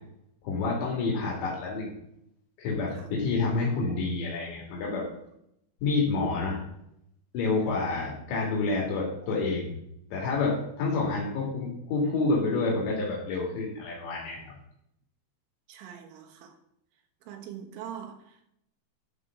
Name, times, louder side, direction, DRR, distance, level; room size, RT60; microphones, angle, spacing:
voice 1, 0.4-1.9 2.6-5.1 5.8-6.6 7.3-9.8 10.1-14.5, left 3 dB, 70° left, -3 dB, 4.4 m, -28 dB
voice 2, 15.7-16.6 17.3-18.6, right 9 dB, 85° right, 5 dB, 3.7 m, -43 dB
13.5 x 4.8 x 6.1 m, 0.76 s
omnidirectional pair, 5.4 m